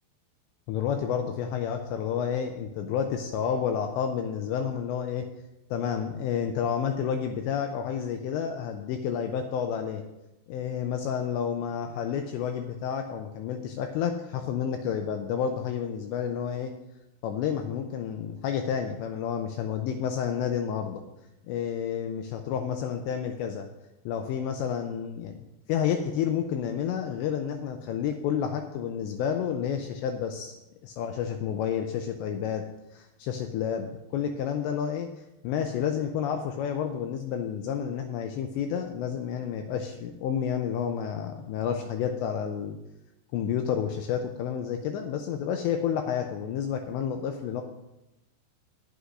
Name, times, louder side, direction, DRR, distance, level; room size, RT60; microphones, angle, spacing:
voice 1, 0.7-5.3 5.7-10.0 10.5-16.7 17.2-21.0 21.5-23.7 24.1-25.4 25.7-30.5 30.8-32.7 32.9-42.8 43.3-47.6, left 8 dB, 85° left, 5 dB, 2.6 m, -30 dB
19.5 x 8.2 x 2.5 m, 0.95 s
omnidirectional pair, 5.6 m